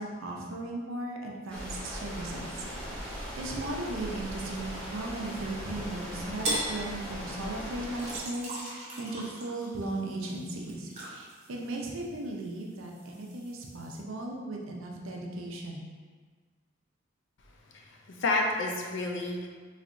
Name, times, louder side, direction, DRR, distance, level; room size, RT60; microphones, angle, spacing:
voice 1, 0.0-2.5 2.9-15.9, right 2 dB, 80° right, 0 dB, 0.6 m, -37 dB
sound 1, 1.5-8.2, equal, 5° left, 0.8 m, -39 dB
sound 2, 6.4-6.8 8.0-12.3 12.6-14.0, right 1 dB, 35° right, 0.7 m, -38 dB
voice 2, 17.7-19.5, left 2 dB, 60° left, 1 dB, 0.5 m, -30 dB
3.5 x 3.1 x 2.6 m, 1.5 s
head